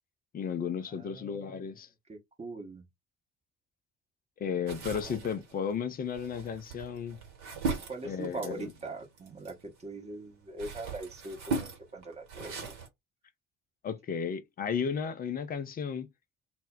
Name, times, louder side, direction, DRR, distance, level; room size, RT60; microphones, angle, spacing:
voice 1, 0.3-1.9 4.4-7.2 8.0-8.7 13.8-16.1, left 7 dB, 25° left, 0.4 m, -34 dB
voice 2, 0.9-1.6 2.1-2.9 7.9-12.5, right 2 dB, 20° right, 0.8 m, -41 dB
sound 1, 4.7-9.9 10.3-12.9, right 4 dB, 60° right, 1.1 m, -38 dB
2.1 x 2.0 x 3.5 m
figure-of-eight pair, 50°, 37 cm